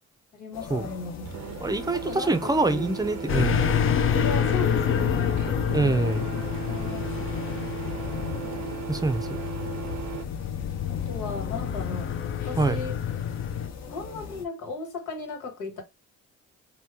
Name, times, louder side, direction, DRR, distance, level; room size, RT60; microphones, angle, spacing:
voice 1, 0.3-1.3 1.9-2.9 4.2-5.5 6.7-7.2 10.9-12.1 12.4-13.0 13.9-15.8, left 3 dB, 90° left, 1.5 m, -36 dB
sound 1, 0.5-14.5, left 6 dB, 60° left, 1.0 m, -41 dB
Printer, 1.2-10.2, right 10 dB, 70° right, 0.6 m, -37 dB
voice 2, 1.6-3.6 5.7-6.3 8.9-9.4 12.6-12.8, right 3 dB, 15° right, 0.5 m, -25 dB
sound 2, 3.3-13.7, left 8 dB, 45° left, 0.5 m, -28 dB
2.9 x 2.2 x 3.4 m
cardioid pair, 90°, 30 cm